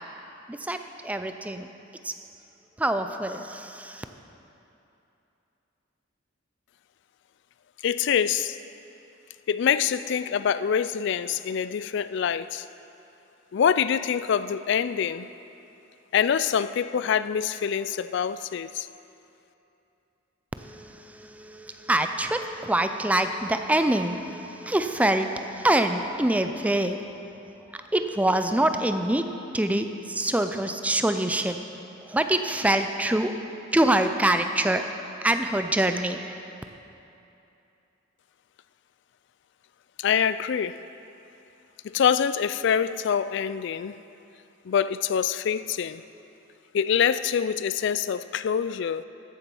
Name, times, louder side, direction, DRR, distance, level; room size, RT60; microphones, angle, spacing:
voice 1, 0.5-1.7 2.0-2.1 2.8-4.0 20.6-27.0 27.7-29.3 29.5-31.6 32.1-33.3 33.7-34.8 35.2-36.4, right 1 dB, 5° right, 7 dB, 0.4 m, -25 dB
voice 2, 7.8-8.6 9.5-12.7 13.5-15.3 16.1-18.9 40.0-40.8 41.8-44.0 44.7-46.0 46.7-49.0, left 7 dB, 60° left, 15 dB, 0.3 m, -25 dB
14.5 x 7.2 x 5.4 m, 2.9 s
head